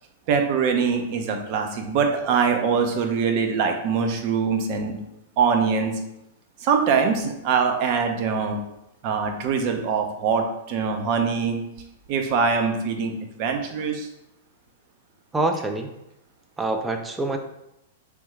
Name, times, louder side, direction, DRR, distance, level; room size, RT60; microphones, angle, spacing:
voice 1, 0.3-5.0 5.4-5.9 6.6-8.6 9.0-11.6 12.1-13.1 13.4-14.1, right 5 dB, 50° right, 4 dB, 0.7 m, -23 dB
voice 2, 15.3-15.9 16.6-17.4, right 2 dB, 10° right, 5 dB, 0.5 m, -25 dB
3.6 x 3.4 x 3.2 m, 0.85 s
hypercardioid pair, 120°, 0 cm